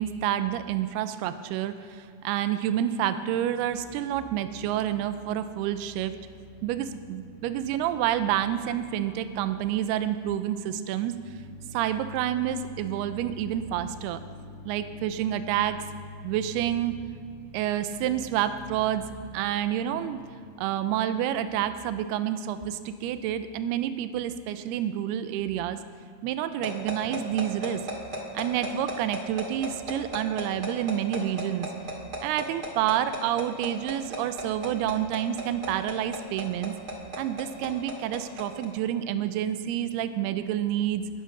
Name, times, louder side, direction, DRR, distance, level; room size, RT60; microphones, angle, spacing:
voice 1, 0.0-6.1 6.6-11.3 11.7-14.2 14.7-15.9 16.2-17.0 17.5-19.1 19.3-20.2 20.6-25.8 26.2-27.8 28.3-31.7 32.2-36.7 37.2-41.0, right 11 dB, 90° right, 11 dB, 2.6 m, -28 dB
sound 1, 3.7-20.4, left 1 dB, 80° left, 4.2 m, -47 dB
sound 2, 26.6-38.6, right 1 dB, 35° right, 1.7 m, -33 dB
20.0 x 8.3 x 6.0 m, 2.4 s
omnidirectional pair, 4.5 m